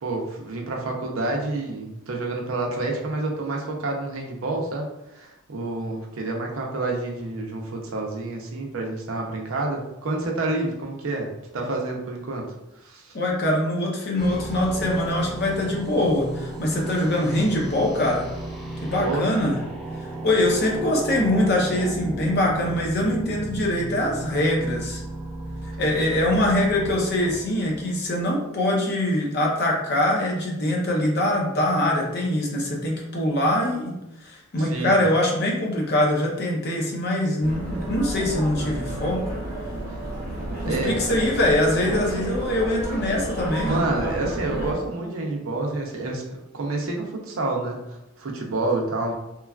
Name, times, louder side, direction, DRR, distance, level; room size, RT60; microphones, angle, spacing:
voice 1, 0.0-11.3 11.5-12.5 12.8-13.1 19.0-19.2 34.6-35.0 40.6-40.9 41.9-42.0 43.6-49.1, right 2 dB, 65° right, 0 dB, 0.6 m, -28 dB
voice 2, 13.1-18.3 18.8-19.6 20.0-25.0 25.6-39.2 40.6-43.8, left 1 dB, 50° left, -1 dB, 0.6 m, -23 dB
sound 1, 14.2-28.3, right 1 dB, ahead, 0.4 m, -34 dB
sound 2, 37.4-44.7, right 1 dB, 40° right, 0.8 m, -31 dB
3.0 x 2.3 x 2.3 m, 0.90 s
head